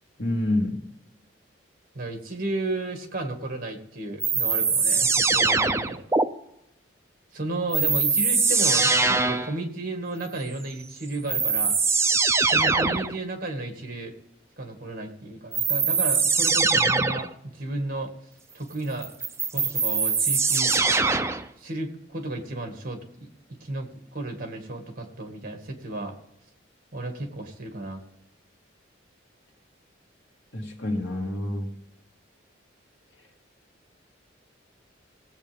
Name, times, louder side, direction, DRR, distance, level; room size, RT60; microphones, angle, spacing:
voice 1, 0.2-0.8 30.5-31.8, left 1 dB, 75° left, 2 dB, 2.1 m, -27 dB
voice 2, 2.0-6.0 7.3-11.7 12.4-14.1 14.6-18.1 18.5-19.1 19.5-20.8 21.6-26.1 26.9-28.0, right 2 dB, 50° right, 4 dB, 1.9 m, -33 dB
sound 1, 4.2-6.2 7.7-9.5 10.8-10.9 11.3-13.1 15.5-17.3 19.0-21.5, right 4 dB, 15° right, 0.5 m, -22 dB
18.5 x 8.1 x 3.5 m, 0.82 s
head